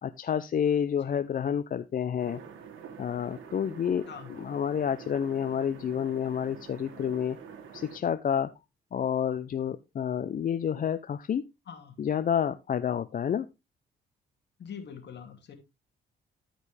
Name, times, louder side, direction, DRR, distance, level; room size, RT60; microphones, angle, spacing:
voice 1, 0.0-2.4 3.0-4.0 4.3-7.4 7.7-8.5 8.9-11.4 12.0-13.5, left 8 dB, 45° left, 12 dB, 0.6 m, -29 dB
sound 1, 2.2-8.0, right 7 dB, 80° right, 1.7 m, -47 dB
voice 2, 11.7-12.0 14.6-15.5, left 7 dB, 60° left, 5 dB, 2.5 m, -44 dB
13.5 x 5.3 x 3.3 m, 0.24 s
cardioid pair, 90°, 20 cm